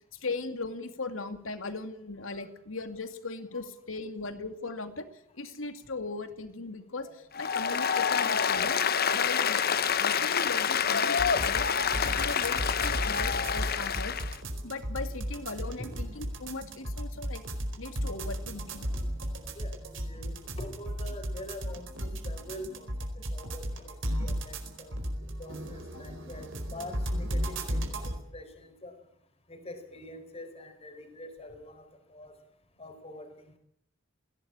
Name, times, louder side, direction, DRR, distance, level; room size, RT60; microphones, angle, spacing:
voice 1, 0.1-9.6 10.0-11.7 12.0-14.2 14.6-17.4 17.8-18.9, left 3 dB, 80° left, 9 dB, 2.5 m, -38 dB
voice 2, 7.0-7.5 8.0-8.1 15.7-15.9 19.5-22.9 23.2-24.9 25.4-27.8 28.3-28.9 29.5-32.3 32.8-33.5, left 1 dB, 30° left, 6 dB, 4.4 m, -45 dB
Applause, 7.3-14.4, left 7 dB, 50° left, 1.1 m, -27 dB
sound 1, 11.2-28.2, equal, 65° right, 4.6 m, -35 dB
20.5 x 17.5 x 8.6 m, 0.69 s
head